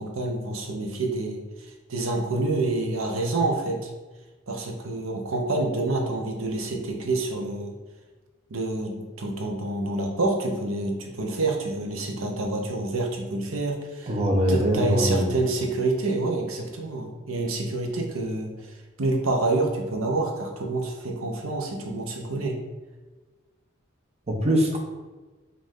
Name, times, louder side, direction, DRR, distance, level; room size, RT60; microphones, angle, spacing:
voice 1, 0.0-3.9 4.5-7.7 8.5-14.1 14.5-18.5 19.0-22.6, right 2 dB, 90° right, 2 dB, 0.8 m, -27 dB
voice 2, 14.1-15.3 24.3-24.8, equal, 30° right, 0 dB, 0.7 m, -22 dB
5.2 x 2.6 x 3.6 m, 1.3 s
head